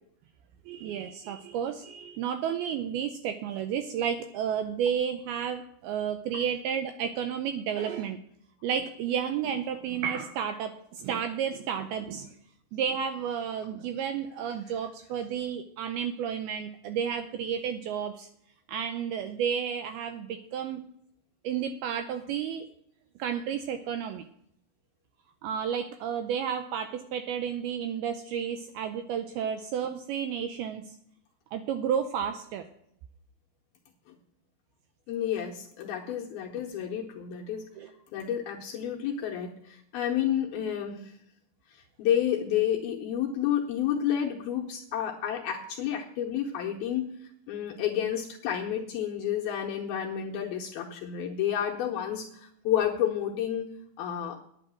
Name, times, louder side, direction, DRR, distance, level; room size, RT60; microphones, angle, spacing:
voice 1, 0.7-8.2 8.6-12.3 12.7-18.3 18.7-20.8 21.4-22.7 23.2-24.2 25.4-31.0 31.5-32.6 37.8-37.9, right 8 dB, 80° right, 8 dB, 2.2 m, -32 dB
voice 2, 35.1-37.7 38.1-41.1 41.7-47.1 47.5-54.4, left 10 dB, 75° left, 0 dB, 2.6 m, -30 dB
10.0 x 8.9 x 6.2 m, 0.71 s
omnidirectional pair, 5.0 m